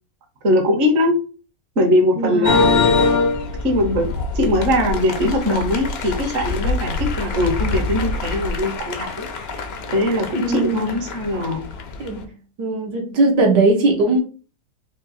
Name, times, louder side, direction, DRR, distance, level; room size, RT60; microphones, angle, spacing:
voice 1, 0.4-1.1 1.8-3.0 3.6-9.5 9.9-11.6, left 1 dB, 45° right, 1.3 m, -21 dB
voice 2, 2.2-2.6 10.3-11.0 12.0-12.2 12.6-14.2, right 2 dB, 75° right, 1.5 m, -19 dB
sound 1, 2.4-12.2, left 3 dB, 80° left, 0.5 m, -24 dB
3.7 x 2.6 x 4.1 m
omnidirectional pair, 1.9 m